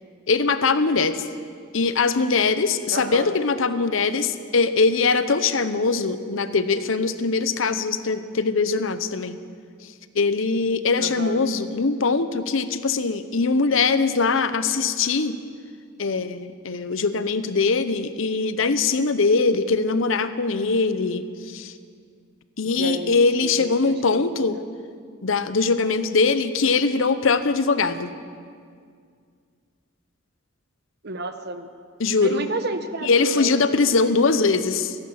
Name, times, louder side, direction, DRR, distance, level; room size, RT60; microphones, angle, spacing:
voice 1, 0.3-1.2 1.7-9.4 10.1-15.4 16.0-21.7 22.6-24.6 25.2-28.1 32.0-32.5 33.0-35.0, left 4 dB, 65° left, 11 dB, 0.7 m, -22 dB
voice 2, 2.9-3.3 11.0-11.4 22.8-24.5 31.0-31.7 32.2-33.8 34.1-34.2, right 2 dB, 50° right, 9 dB, 0.9 m, -32 dB
15.0 x 11.0 x 7.2 m, 2.1 s
head